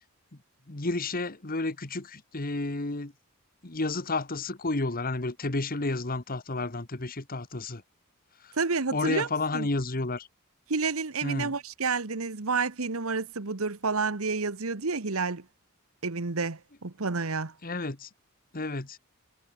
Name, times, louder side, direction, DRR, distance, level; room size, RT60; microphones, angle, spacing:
voice 1, 0.7-3.1 3.6-7.8 8.4-8.6 8.9-10.3 11.2-11.5 17.6-18.1 18.5-19.0, left 2 dB, 40° left, 1.5 m, -31 dB
voice 2, 8.5-9.3 9.5-9.7 10.7-15.4 16.0-17.5, right 4 dB, 70° right, 1.3 m, -29 dB
head